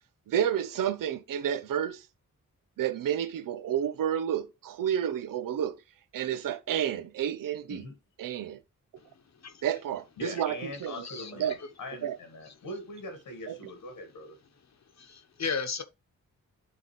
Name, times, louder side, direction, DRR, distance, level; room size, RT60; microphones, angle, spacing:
voice 1, 0.3-2.0 2.8-5.8 6.1-7.8 8.2-8.6 9.6-11.0 11.4-11.6 12.0-12.2 13.5-13.6, right 9 dB, 90° right, 0.6 m, -30 dB
voice 2, 9.0-9.6 10.7-11.7 12.4-12.7 14.7-15.8, left 5 dB, 55° left, 1.1 m, -37 dB
voice 3, 10.2-14.4, left 1 dB, 85° left, 1.9 m, -42 dB
11.5 x 3.9 x 3.2 m
cardioid pair, 80°, 32 cm